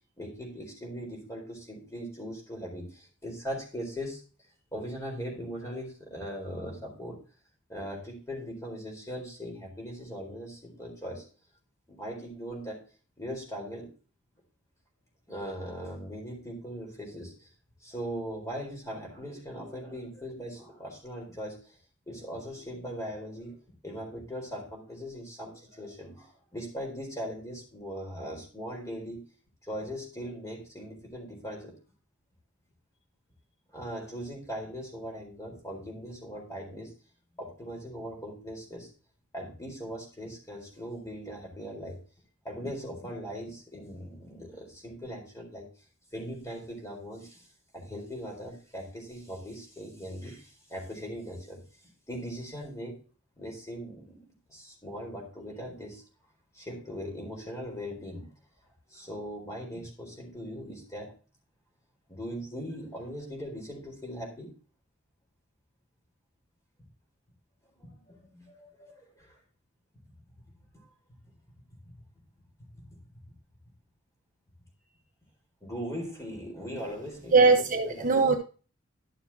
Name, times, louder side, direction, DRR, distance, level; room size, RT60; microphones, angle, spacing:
voice 1, 0.2-4.2 4.7-7.2 7.7-11.2 11.9-12.8 13.2-13.9 15.3-17.5 17.8-21.8 22.1-23.6 23.8-29.2 29.7-31.7 33.7-36.9 37.4-38.9 39.3-42.0 42.4-45.7 46.1-47.5 47.7-51.6 52.1-53.0 53.4-54.2 54.5-56.0 56.5-58.3 58.9-61.1 62.1-64.5 67.8-69.4 70.7-70.8 71.8-71.9 72.7-72.8 75.6-78.1, equal, 15° left, 0 dB, 4.2 m, -40 dB
voice 2, 77.3-78.4, right 4 dB, 40° right, 2 dB, 1.3 m, -20 dB
12.5 x 7.0 x 2.8 m, 0.36 s
head